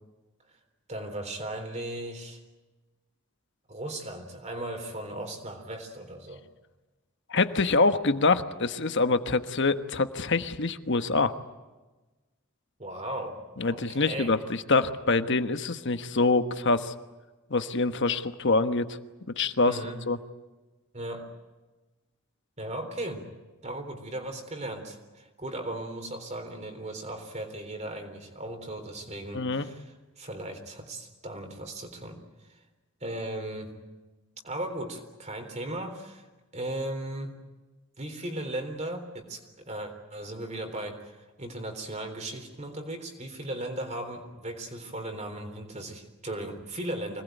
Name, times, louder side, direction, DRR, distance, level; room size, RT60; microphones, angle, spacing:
voice 1, 0.9-2.4 3.7-6.4 12.8-14.3 19.6-20.0 20.9-21.3 22.6-23.3 23.6-32.2 32.5-32.6 33.0-33.8 34.4-36.3 36.5-37.3 38.0-47.2, right 1 dB, 30° right, 4 dB, 3.8 m, -37 dB
voice 2, 7.3-11.3 13.6-16.9 17.5-19.0 19.4-19.8 20.1-20.2 29.3-29.7, left 3 dB, 55° left, 9 dB, 1.3 m, -25 dB
25.5 x 19.5 x 9.3 m, 1.2 s
head